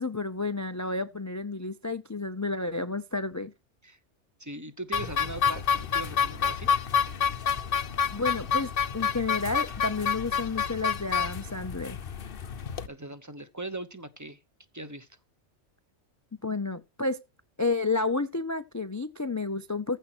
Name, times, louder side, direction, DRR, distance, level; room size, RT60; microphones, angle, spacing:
voice 1, 0.0-3.5 8.1-12.0 16.4-17.2 17.6-20.0, left 3 dB, 25° left, 0.4 m, -31 dB
voice 2, 4.4-6.7 12.9-14.4 14.7-15.1, right 2 dB, 15° right, 0.9 m, -40 dB
sound 1, 4.9-12.9, left 7 dB, 50° left, 0.9 m, -28 dB
15.0 x 5.1 x 6.0 m
omnidirectional pair, 1.3 m